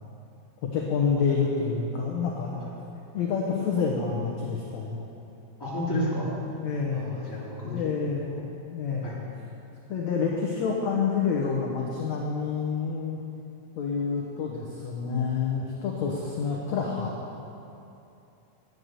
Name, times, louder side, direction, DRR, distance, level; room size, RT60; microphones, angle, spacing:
voice 1, 0.6-2.6 3.1-5.1 5.9-7.2 7.7-9.2 9.9-13.2 13.8-17.1, left 5 dB, 65° left, -3 dB, 1.8 m, -28 dB
voice 2, 5.6-6.2 6.9-8.4 9.0-9.1, equal, 5° left, -8 dB, 2.8 m, -33 dB
11.0 x 9.7 x 6.6 m, 2.8 s
omnidirectional pair, 4.4 m